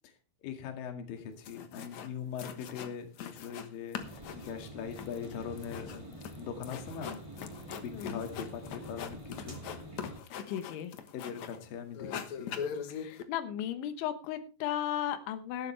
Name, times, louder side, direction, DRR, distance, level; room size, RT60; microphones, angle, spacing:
voice 1, 0.4-4.0 4.3-7.2 7.8-9.6 11.1-12.6, left 7 dB, 55° left, 6 dB, 3.5 m, -41 dB
sound 1, 1.2-1.3 1.4-2.1 2.4-3.7 3.9-11.6 11.9-13.2, left 7 dB, 75° left, 1.6 m, -42 dB
sound 2, 4.0-10.2, right 2 dB, 20° right, 0.8 m, -47 dB
voice 2, 7.9-8.3 10.5-10.9 12.9-15.7, left 11 dB, 90° left, 9 dB, 3.6 m, -35 dB
16.5 x 12.0 x 3.3 m, 0.30 s
omnidirectional pair, 5.2 m